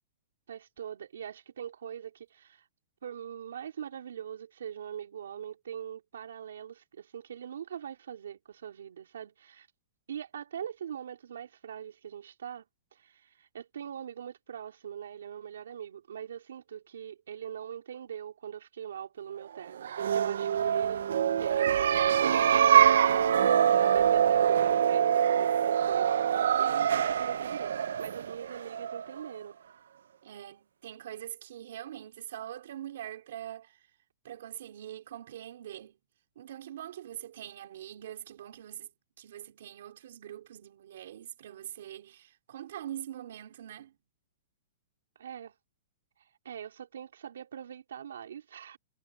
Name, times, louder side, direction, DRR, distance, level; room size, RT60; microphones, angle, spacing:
voice 1, 0.5-2.7 3.0-9.7 10.1-12.6 12.9-21.1 21.4-22.7 23.0-29.6 45.2-45.5 46.2-48.8, right 9 dB, 90° right, 3.8 m, -42 dB
sound 1, 19.8-29.3, right 9 dB, 70° right, 0.5 m, -25 dB
voice 2, 30.2-33.8 34.2-36.0 36.4-38.9 39.2-44.0, right 11 dB, 50° right, 4.2 m, -43 dB
hypercardioid pair, 180°, 0 cm